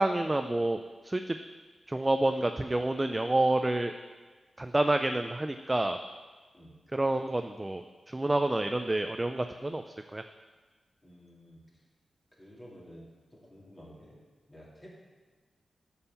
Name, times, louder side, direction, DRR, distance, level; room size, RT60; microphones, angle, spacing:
voice 1, 0.0-1.4 1.9-3.9 4.6-6.0 6.9-9.8 10.1-10.2, right 2 dB, 20° right, 7 dB, 0.4 m, -28 dB
voice 2, 11.0-11.6 12.4-13.0 13.3-14.1 14.5-14.9, equal, 25° left, -5 dB, 3.1 m, -51 dB
6.8 x 5.5 x 6.9 m, 1.4 s
cardioid pair, 70°, 0 cm